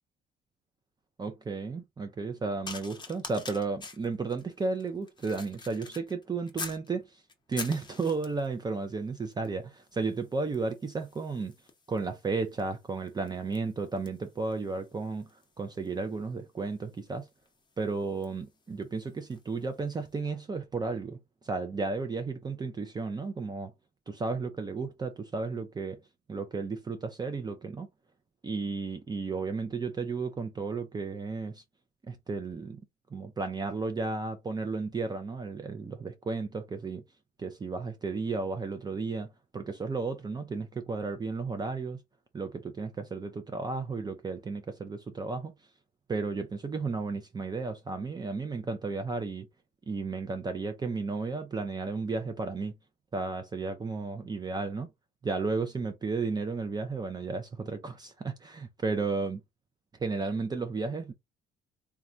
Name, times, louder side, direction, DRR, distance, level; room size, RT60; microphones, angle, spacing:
voice 1, 1.2-7.2 7.5-11.5 11.9-15.3 15.6-17.3 17.8-21.2 21.4-23.7 24.1-26.0 26.3-27.9 28.4-31.6 32.0-32.8 33.1-37.0 37.4-39.3 39.5-42.0 42.3-45.5 46.1-49.5 49.9-52.7 53.1-54.9 55.2-59.4 60.0-61.1, right 4 dB, 25° right, 0.5 m, -33 dB
sound 1, 2.6-6.9 7.3-8.5 9.3-9.6 9.8-19.5 20.2-20.4, left 4 dB, 25° left, 0.8 m, -46 dB
3.1 x 2.3 x 2.5 m
cardioid pair, 95°, 18 cm